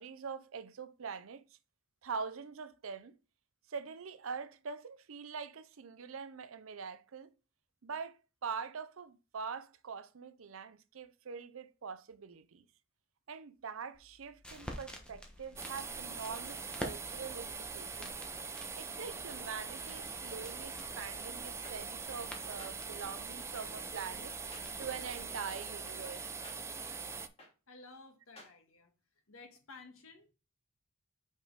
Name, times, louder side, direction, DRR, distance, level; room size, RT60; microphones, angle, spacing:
voice 1, 0.0-1.4 2.0-3.2 3.7-7.3 7.8-12.7 13.3-18.2 18.8-26.4, right 6 dB, 75° right, 0.6 m, -44 dB
sound 1, 13.9-25.2, equal, 5° left, 1.0 m, -50 dB
sound 2, 15.6-27.3, right 4 dB, 15° right, 0.4 m, -42 dB
sound 3, 21.6-21.7 22.6-22.7 23.5-23.6 24.5-24.6 25.5-25.6 26.4-26.6 27.4-27.5 28.4-28.5, left 1 dB, 30° left, 2.1 m, -52 dB
voice 2, 27.7-28.9 29.3-30.3, left 3 dB, 80° left, 1.5 m, -54 dB
5.4 x 5.0 x 4.0 m
head